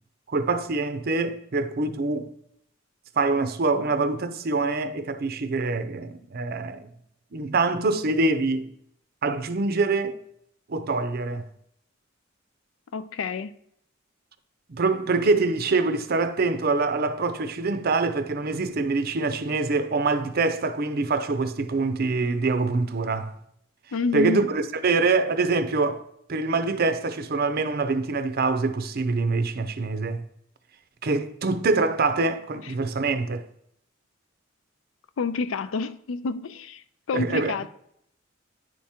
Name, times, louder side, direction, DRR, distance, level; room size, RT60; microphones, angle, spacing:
voice 1, 0.3-2.3 3.2-6.9 7.3-8.7 9.2-10.2 10.7-11.5 14.7-23.3 24.1-26.0 26.3-30.3 31.0-33.5 37.1-37.5, right 3 dB, 50° right, 0.5 m, -25 dB
voice 2, 12.9-13.5 23.9-24.5 32.6-32.7 35.2-37.7, left 4 dB, 85° left, 0.4 m, -29 dB
9.5 x 3.5 x 4.3 m
head